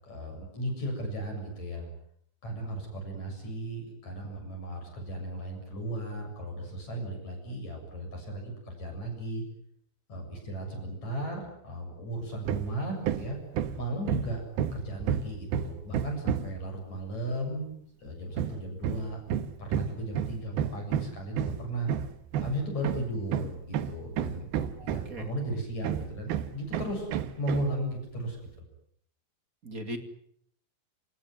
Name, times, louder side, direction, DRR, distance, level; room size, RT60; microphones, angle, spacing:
voice 1, 0.0-1.9 2.4-9.4 10.1-13.4 13.8-14.4 14.7-17.7 18.0-19.2 19.6-21.9 22.4-24.5 24.8-27.1 27.4-28.4, right 1 dB, 40° left, 2 dB, 8.4 m, -35 dB
Hammer, 12.5-12.8 13.0-16.6 18.4-25.3 25.8-27.8, right 9 dB, 65° right, 2.8 m, -31 dB
voice 2, 24.6-25.3 29.6-30.0, right 1 dB, 30° right, 7 dB, 1.6 m, -40 dB
30.0 x 19.0 x 9.6 m, 0.70 s
omnidirectional pair, 5.3 m